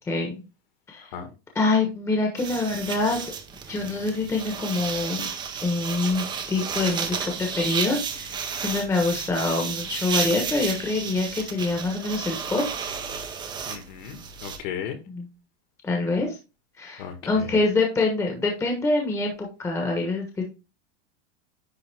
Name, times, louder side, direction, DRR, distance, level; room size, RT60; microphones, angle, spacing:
voice 1, 0.1-0.4 0.9-1.0 1.5-3.2 3.7-5.2 5.6-12.6 15.1-15.3 15.8-16.3 16.8-20.4, left 3 dB, 10° left, 1.1 m, -25 dB
sound 1, 2.4-14.6, right 6 dB, 15° right, 0.6 m, -32 dB
voice 2, 13.7-15.0 17.0-17.5, left 8 dB, 50° left, 1.6 m, -35 dB
9.9 x 3.4 x 3.4 m
supercardioid pair, 170°, 31 cm